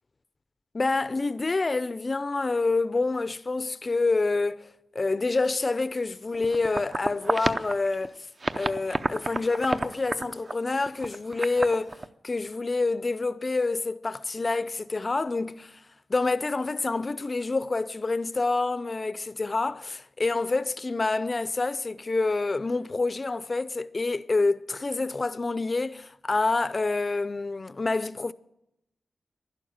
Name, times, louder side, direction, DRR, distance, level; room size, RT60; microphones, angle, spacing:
voice 1, 0.7-8.1 8.5-12.0 12.2-15.8 16.1-28.3, left 3 dB, 30° left, 0.5 m, -27 dB
sound 1, 6.3-8.1 8.4-12.1, right 3 dB, 35° right, 0.6 m, -31 dB
11.5 x 11.5 x 8.7 m
wide cardioid pair, 120°, 0 cm